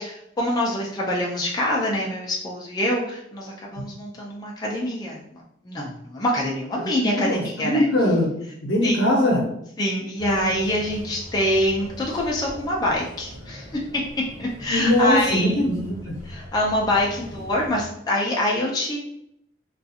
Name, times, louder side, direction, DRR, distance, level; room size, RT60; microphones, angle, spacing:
voice 1, 0.0-5.2 5.6-7.9 8.8-9.0 9.8-13.7 14.4-15.5 16.2-19.0, left 1 dB, 20° left, -3 dB, 0.4 m, -25 dB
voice 2, 6.8-8.3 8.6-9.4 14.7-16.1, left 1 dB, 75° left, 0 dB, 0.7 m, -21 dB
sound 1, 10.2-17.9, equal, 35° right, 1.2 m, -41 dB
2.4 x 2.3 x 2.7 m, 0.74 s
head